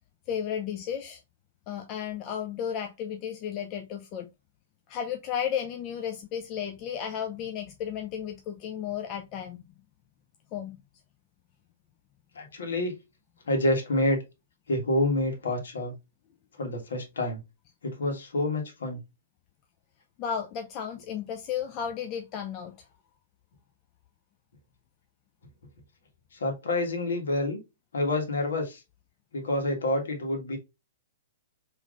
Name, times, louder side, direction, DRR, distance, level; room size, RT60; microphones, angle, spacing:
voice 1, 0.3-1.2 1.7-4.3 4.9-9.6 10.5-10.8 20.2-22.9, left 8 dB, 35° left, 0.5 m, -33 dB
voice 2, 12.3-12.9 13.4-14.2 14.7-15.9 16.6-17.4 17.8-19.0 26.3-27.6 27.9-28.8 29.3-30.6, left 1 dB, 70° left, 1.7 m, -28 dB
4.7 x 3.1 x 2.5 m
figure-of-eight pair, 110°, 0 cm